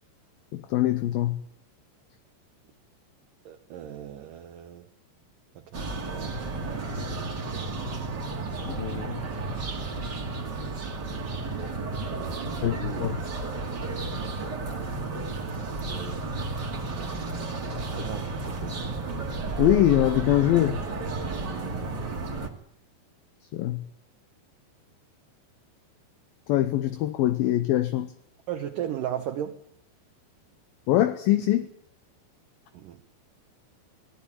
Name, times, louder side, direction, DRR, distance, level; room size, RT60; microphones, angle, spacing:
voice 1, 0.5-1.4 8.7-9.2 12.6-13.2 19.6-20.8 23.5-23.8 26.5-28.1 30.9-31.7, left 13 dB, 70° left, 11 dB, 2.4 m, -23 dB
voice 2, 3.5-4.9 5.6-6.4 12.0-13.1 15.9-16.3 17.0-17.1 17.6-19.3 21.6-21.9 28.5-29.6 32.7-33.0, right 10 dB, 70° right, 6 dB, 2.2 m, -37 dB
sound 1, 5.7-22.5, right 3 dB, 30° right, 2.2 m, -32 dB
19.0 x 16.5 x 9.9 m, 0.69 s
omnidirectional pair, 5.0 m